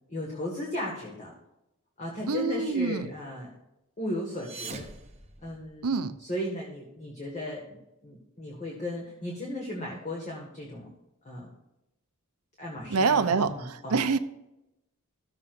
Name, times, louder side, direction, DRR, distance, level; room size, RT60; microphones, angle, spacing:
voice 1, 0.1-1.3 2.0-3.5 4.0-4.8 5.4-10.9 11.2-11.5 12.6-14.0, left 1 dB, 35° left, -3 dB, 1.7 m, -36 dB
voice 2, 2.3-3.1 5.8-6.1 12.9-14.2, right 4 dB, 85° right, 10 dB, 0.7 m, -26 dB
sound 1, 4.2-6.1, right 3 dB, 30° right, 0.9 m, -44 dB
14.0 x 7.0 x 2.5 m, 0.90 s
head